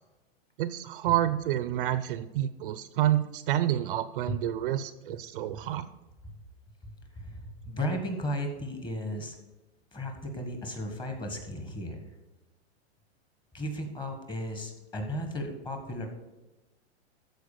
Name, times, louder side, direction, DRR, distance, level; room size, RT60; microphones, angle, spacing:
voice 1, 0.6-5.9, right 12 dB, 55° right, 14 dB, 0.6 m, -29 dB
voice 2, 6.8-9.4 9.9-12.0 13.5-16.1, equal, 15° left, 4 dB, 1.6 m, -35 dB
13.0 x 4.9 x 6.7 m, 1.1 s
supercardioid pair, 150°, 33 cm